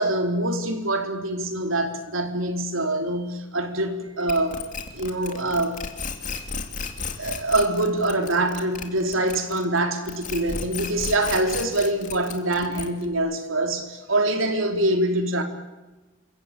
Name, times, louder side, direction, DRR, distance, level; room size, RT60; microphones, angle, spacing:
voice 1, 0.0-4.6 4.9-5.8 7.2-15.4, right 1 dB, 85° right, 3.5 m, -24 dB
sound 1, 4.3-9.8 10.1-13.1, left 5 dB, 40° left, 2.7 m, -33 dB
27.5 x 24.0 x 9.0 m
head